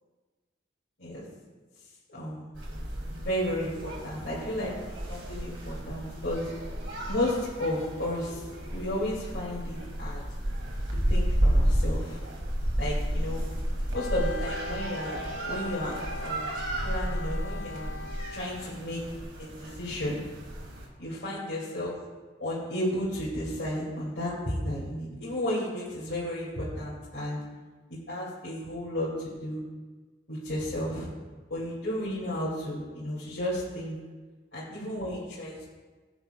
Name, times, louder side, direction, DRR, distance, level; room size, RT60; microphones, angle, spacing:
voice 1, 2.1-2.5 3.2-4.7 5.1-6.5 7.1-8.4 8.7-10.2 11.1-12.2 12.8-13.4 13.9-15.2 15.5-17.9 18.3-19.0 19.4-20.3 21.0-22.0 22.4-27.4 27.9-29.6 30.3-31.1 31.5-34.0 34.5-35.6, left 1 dB, 85° left, -9 dB, 2.4 m, -33 dB
sound 1, 2.5-20.9, equal, 75° right, 2.1 m, -32 dB
Wind instrument woodwind instrument, 13.9-18.7, left 2 dB, 65° left, 0.7 m, -40 dB
17.0 x 8.9 x 2.3 m, 1.4 s
head